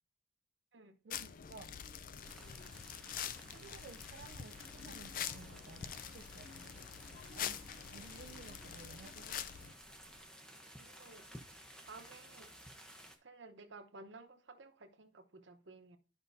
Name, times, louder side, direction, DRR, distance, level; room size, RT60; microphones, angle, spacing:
voice 1, 1.0-1.7 3.5-9.7, right 4 dB, 55° right, 0.4 m, -56 dB
sound 1, 1.1-9.7, left 8 dB, 45° left, 0.4 m, -45 dB
Aircraft, 1.7-10.2, equal, 75° left, 2.5 m, -66 dB
sound 2, 2.2-13.2, equal, 5° left, 0.8 m, -56 dB
voice 2, 10.8-11.3 11.8-12.6 13.2-16.0, right 3 dB, 75° right, 0.9 m, -55 dB
12.0 x 5.3 x 2.6 m
head